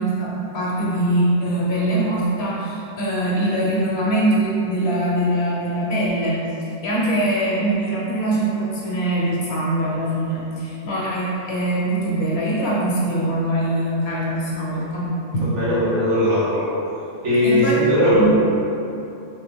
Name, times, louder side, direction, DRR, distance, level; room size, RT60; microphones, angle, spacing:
voice 1, 0.0-6.5 6.8-15.6 17.4-17.7 18.2-18.3, right 1 dB, 60° left, -6 dB, 1.1 m, -22 dB
voice 2, 15.5-16.6 17.2-18.3, equal, 80° right, -11 dB, 1.4 m, -18 dB
3.5 x 3.3 x 3.4 m, 2.8 s
omnidirectional pair, 1.2 m